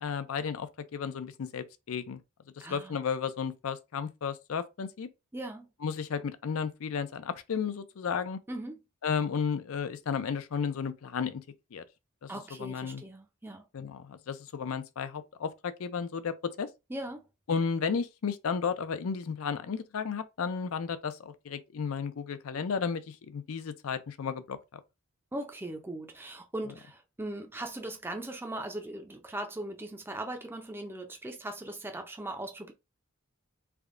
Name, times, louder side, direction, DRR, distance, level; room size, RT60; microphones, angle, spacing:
voice 1, 0.0-2.2 2.6-5.1 5.8-8.4 9.0-11.4 11.7-11.8 12.2-12.3 12.6-13.0 13.7-16.7 17.5-24.8, left 6 dB, 70° left, 0.4 m, -33 dB
voice 2, 2.6-3.0 5.3-5.7 8.5-8.8 12.3-13.6 16.9-17.2 25.3-32.7, right 1 dB, 10° right, 0.4 m, -39 dB
3.4 x 2.2 x 3.6 m
head